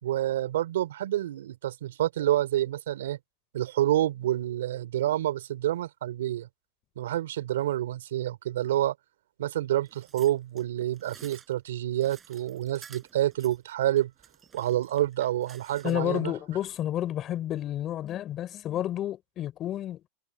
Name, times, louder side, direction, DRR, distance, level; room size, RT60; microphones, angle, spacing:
voice 1, 0.0-3.2 3.5-6.5 7.0-8.9 9.4-14.1 14.5-16.3, right 13 dB, 85° right, 3.5 m, -28 dB
sound 1, 9.9-16.2 16.6-16.8, right 7 dB, 20° right, 6.6 m, -53 dB
voice 2, 15.8-20.1, left 12 dB, 35° left, 3.6 m, -31 dB
supercardioid pair, 130°, 0 cm